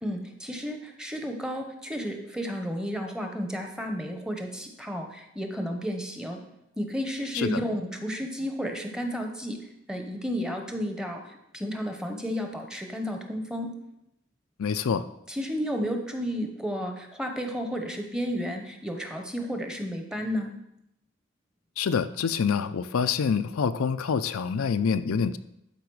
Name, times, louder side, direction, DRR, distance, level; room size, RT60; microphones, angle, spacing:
voice 1, 0.0-6.4 6.8-9.6 9.9-13.7 15.3-20.5, equal, 5° right, 4 dB, 0.8 m, -32 dB
voice 2, 14.6-15.0 21.8-25.4, left 6 dB, 80° left, 11 dB, 0.4 m, -26 dB
12.0 x 4.8 x 4.7 m, 0.82 s
head